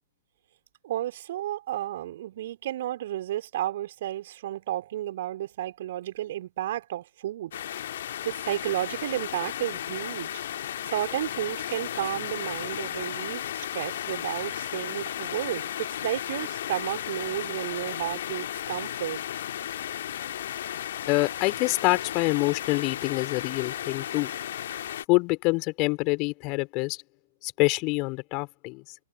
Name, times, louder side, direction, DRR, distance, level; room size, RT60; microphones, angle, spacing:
voice 1, 0.8-7.8 8.2-10.3 10.9-19.2, right 13 dB, 50° right, 3.2 m, -32 dB
sound 1, 7.5-25.0, left 11 dB, 55° left, 2.2 m, -34 dB
voice 2, 21.1-24.3 25.1-27.0 27.4-28.8, left 27 dB, 35° left, 4.0 m, -26 dB
figure-of-eight pair, 110°, 0 cm